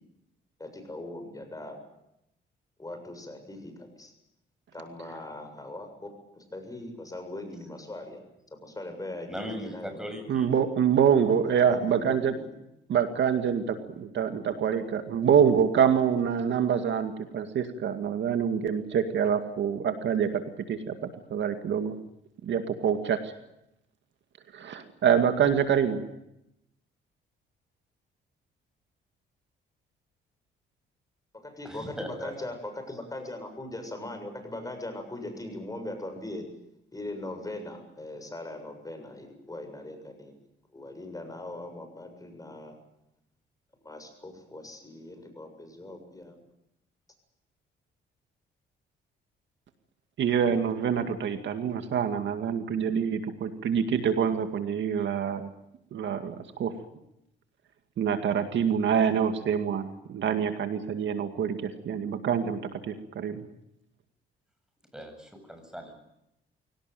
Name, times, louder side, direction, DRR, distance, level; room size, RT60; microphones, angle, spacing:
voice 1, 0.6-1.8 2.8-4.1 4.7-8.2 8.5-10.0 11.5-12.5 31.3-36.5 36.9-40.4 40.7-42.8 43.8-46.4, left 1 dB, 15° left, 6 dB, 7.2 m, -40 dB
voice 2, 9.3-10.5 31.6-32.3 64.9-65.9, equal, 5° right, 5 dB, 8.0 m, -38 dB
voice 3, 10.3-12.3 12.9-20.4 20.7-20.9 21.3-21.9 22.4-23.3 24.5-26.0 50.2-55.5 55.9-56.7 58.0-62.6 62.9-63.4, right 7 dB, 65° right, 8 dB, 2.2 m, -26 dB
23.5 x 18.0 x 9.3 m, 0.83 s
cardioid pair, 90°, 20 cm